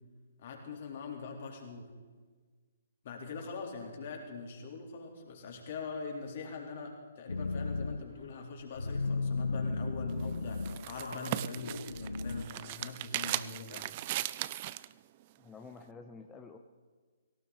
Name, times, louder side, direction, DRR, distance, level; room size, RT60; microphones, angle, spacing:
voice 1, 0.4-1.9 3.0-14.2, left 4 dB, 45° left, 1 dB, 3.7 m, -43 dB
sound 1, 7.3-8.0 8.4-12.4, left 3 dB, 75° left, 0.7 m, -35 dB
sound 2, 10.1-14.9, right 15 dB, 35° right, 0.5 m, -38 dB
voice 2, 15.4-16.6, left 4 dB, 10° left, 3 dB, 0.9 m, -49 dB
18.5 x 17.5 x 4.1 m, 1.4 s
figure-of-eight pair, 125°, 0 cm